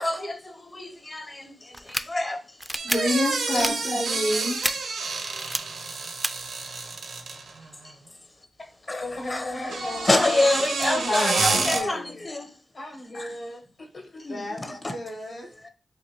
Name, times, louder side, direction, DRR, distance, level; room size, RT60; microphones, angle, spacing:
voice 1, 0.0-2.4 3.5-4.0 7.8-7.9 8.9-9.0 9.3-12.5 14.6-14.9 15.6-15.7, left 2 dB, 35° left, 0.7 m, -27 dB
sound 1, 1.7-2.0 2.6-3.0 3.5-3.7 4.6-4.7 5.4-5.6 6.2-6.3, right 1 dB, 10° right, 0.3 m, -27 dB
voice 2, 2.8-4.7 10.9-12.2 14.3-14.6 14.9-15.5, left 1 dB, 75° left, 1.0 m, -29 dB
sound 2, 2.8-7.6 9.5-11.8, right 4 dB, 85° right, 0.7 m, -29 dB
voice 3, 8.6-10.2 12.7-14.5, left 1 dB, 55° left, 1.2 m, -38 dB
4.1 x 2.6 x 2.8 m
cardioid pair, 55°, 0 cm